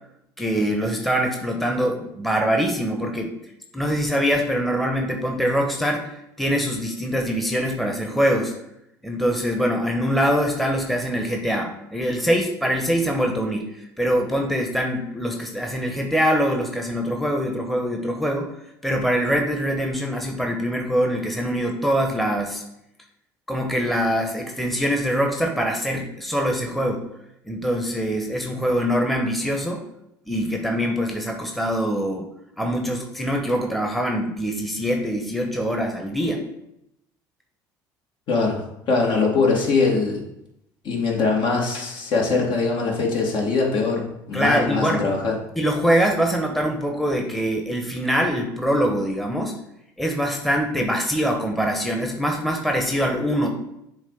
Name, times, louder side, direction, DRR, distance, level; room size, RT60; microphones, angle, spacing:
voice 1, 0.4-3.3 3.7-8.5 9.0-13.7 14.0-18.5 18.8-22.6 23.5-27.0 27.4-29.8 30.3-32.3 32.6-36.4 44.3-45.1 45.6-49.6 50.0-53.5, equal, ahead, 2 dB, 1.0 m, -23 dB
voice 2, 38.3-40.2 40.8-45.3, left 4 dB, 55° left, -1 dB, 1.8 m, -22 dB
7.2 x 2.6 x 5.4 m, 0.81 s
supercardioid pair, 80°, 10 cm